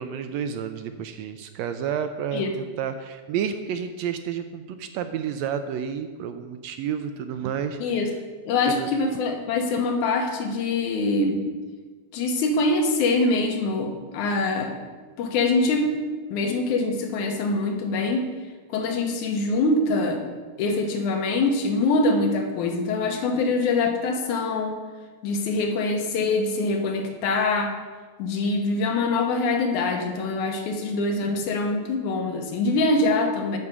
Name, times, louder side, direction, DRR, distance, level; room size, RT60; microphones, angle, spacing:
voice 1, 0.0-7.8 8.7-8.9, right 8 dB, 80° right, 8 dB, 1.6 m, -30 dB
voice 2, 7.8-8.1 8.5-11.4 12.1-14.8 15.2-15.9 16.3-18.3 18.7-20.3 20.6-24.8 25.2-27.7 28.2-33.6, left 3 dB, 85° left, 3 dB, 2.6 m, -24 dB
11.0 x 4.9 x 7.1 m, 1.4 s
omnidirectional pair, 3.4 m